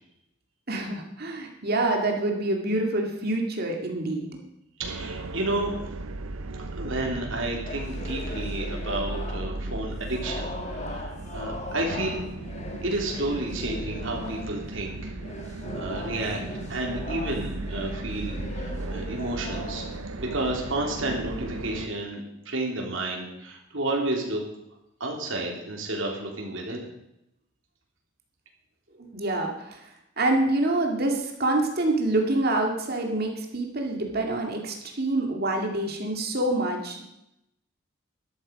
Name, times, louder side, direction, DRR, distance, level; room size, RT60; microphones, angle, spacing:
voice 1, 0.7-4.3 29.0-29.9 30.2-37.0, right 2 dB, 50° right, 2 dB, 2.3 m, -26 dB
voice 2, 4.8-5.7 6.6-12.2 12.8-15.1 15.7-19.8 20.2-24.4 25.0-26.8, right 2 dB, 65° right, 0 dB, 3.5 m, -31 dB
sound 1, 4.8-21.9, right 2 dB, 85° right, 0.8 m, -36 dB
sound 2, 7.7-9.7 10.1-14.7 15.1-20.5, left 1 dB, 35° left, 1.7 m, -39 dB
13.0 x 12.5 x 5.4 m, 0.84 s
head